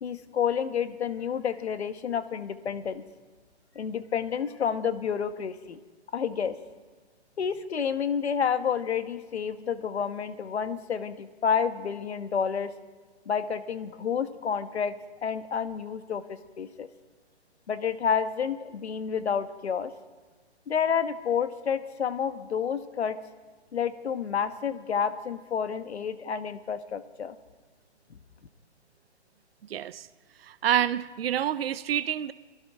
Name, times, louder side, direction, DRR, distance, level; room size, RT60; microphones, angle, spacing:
voice 1, 0.0-3.0 3.7-5.8 6.1-6.6 7.4-12.7 13.3-14.9 15.2-16.9 17.7-19.9 20.7-23.2 23.7-27.4, left 7 dB, 70° left, 11 dB, 1.3 m, -29 dB
voice 2, 29.7-30.1 30.4-32.3, right 10 dB, 60° right, 16 dB, 0.7 m, -27 dB
23.0 x 15.5 x 3.6 m, 1.4 s
hypercardioid pair, 145°, 33 cm